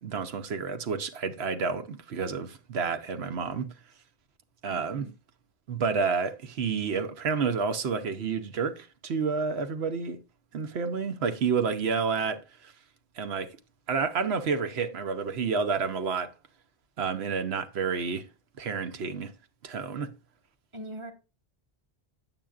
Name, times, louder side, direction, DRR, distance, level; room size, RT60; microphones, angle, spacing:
voice 1, 0.0-3.7 4.6-5.1 5.7-10.2 10.5-12.7 13.2-13.6 13.9-16.3 17.0-18.3 18.6-19.3 19.6-20.1, right 5 dB, 90° right, 1.1 m, -30 dB
voice 2, 20.7-21.1, right 1 dB, 30° right, 1.5 m, -41 dB
9.0 x 7.7 x 2.4 m
omnidirectional pair, 1.0 m